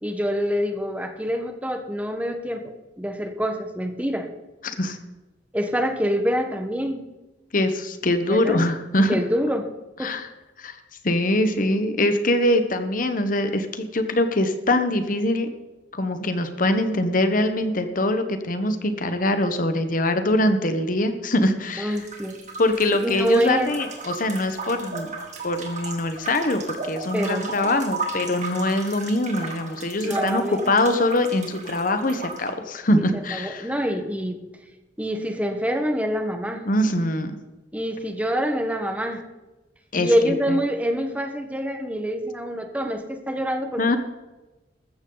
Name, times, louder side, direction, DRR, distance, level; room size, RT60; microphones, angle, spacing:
voice 1, 0.0-4.3 5.5-7.0 8.3-8.7 9.1-9.6 10.0-10.1 21.8-22.4 23.0-23.7 27.1-27.7 30.0-30.6 33.3-34.4 35.0-36.6 37.7-39.2 40.0-44.0, equal, 10° right, 5 dB, 1.3 m, -26 dB
voice 2, 4.6-5.0 7.5-9.2 10.0-10.3 10.6-10.8 11.0-15.5 15.9-22.0 22.6-25.1 25.4-33.7 36.6-37.3 39.9-40.6 43.8-44.0, left 1 dB, 45° left, 9 dB, 1.1 m, -23 dB
sound 1, 21.9-32.5, right 3 dB, 40° right, 2.4 m, -35 dB
14.5 x 13.5 x 4.0 m, 1.1 s
head